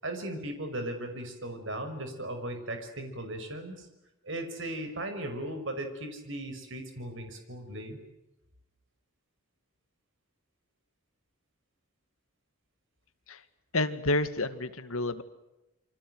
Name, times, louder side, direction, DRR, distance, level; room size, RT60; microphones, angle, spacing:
voice 1, 0.0-3.9 4.2-8.0, right 1 dB, 60° right, 7 dB, 5.7 m, -37 dB
voice 2, 13.7-15.2, left 2 dB, 75° left, 11 dB, 2.0 m, -29 dB
28.0 x 24.5 x 7.9 m, 0.96 s
head